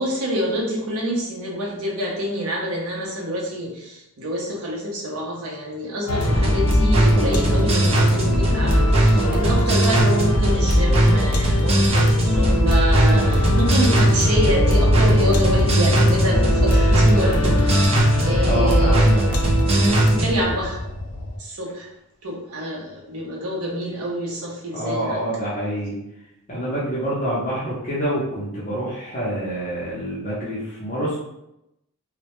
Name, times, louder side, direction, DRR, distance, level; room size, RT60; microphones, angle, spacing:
voice 1, 0.0-19.1 19.7-20.8 21.4-21.9 22.2-25.2, equal, 80° right, -2 dB, 0.6 m, -27 dB
sound 1, 6.1-21.4, left 1 dB, 80° left, 0.4 m, -24 dB
sound 2, 6.2-20.3, right 1 dB, 25° right, 0.4 m, -18 dB
voice 2, 18.4-19.2 24.7-26.0 26.5-31.2, equal, 35° left, -8 dB, 0.5 m, -26 dB
2.1 x 2.0 x 2.9 m, 0.86 s
head